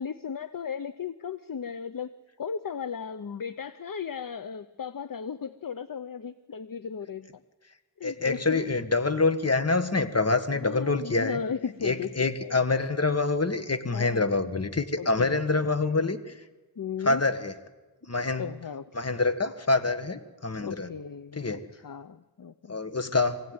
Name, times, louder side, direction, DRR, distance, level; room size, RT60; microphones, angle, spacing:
voice 1, 0.0-2.1 2.4-7.3 8.0-8.6 10.5-12.6 13.9-14.3 15.0-16.0 16.8-17.2 18.4-18.9 20.6-22.8, left 6 dB, 60° left, 13 dB, 0.8 m, -36 dB
voice 2, 8.0-11.4 11.8-16.2 17.0-17.5 18.1-18.5 18.9-20.9 21.3-21.6 22.7-23.4, left 3 dB, 40° left, 9 dB, 1.7 m, -26 dB
24.5 x 16.5 x 9.6 m, 1.2 s
wide cardioid pair, 70°, 38 cm